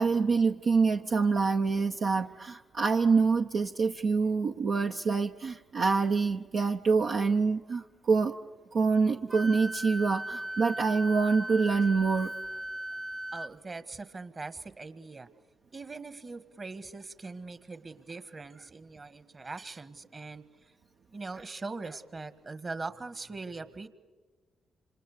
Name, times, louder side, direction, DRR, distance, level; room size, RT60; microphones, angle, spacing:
voice 1, 0.0-8.3 8.7-12.3, right 4 dB, 60° right, 2 dB, 0.8 m, -26 dB
Wind instrument woodwind instrument, 9.3-13.5, right 1 dB, 15° right, 0.7 m, -37 dB
voice 2, 13.3-15.3 15.7-20.7 21.1-23.9, right 3 dB, 40° right, 12 dB, 1.7 m, -41 dB
27.5 x 26.5 x 6.8 m, 1.3 s
hypercardioid pair, 40°, 0 cm